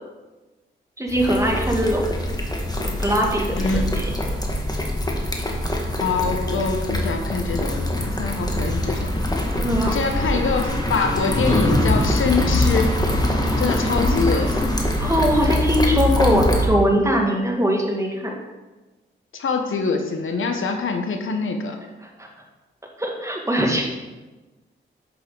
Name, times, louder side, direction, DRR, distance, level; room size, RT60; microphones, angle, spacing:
voice 1, 1.0-2.2 2.8-4.1 9.6-10.0 15.0-18.4 22.0-22.3 23.0-23.8, equal, 15° right, 0 dB, 2.0 m, -21 dB
sound 1, 1.1-16.7, left 1 dB, 20° left, 1.6 m, -23 dB
voice 2, 3.5-4.0 6.0-9.1 9.8-13.0 13.6-14.8 19.3-21.8, left 4 dB, 75° left, 5 dB, 1.0 m, -24 dB
7.8 x 7.0 x 3.9 m, 1.2 s
cardioid pair, 50°, 21 cm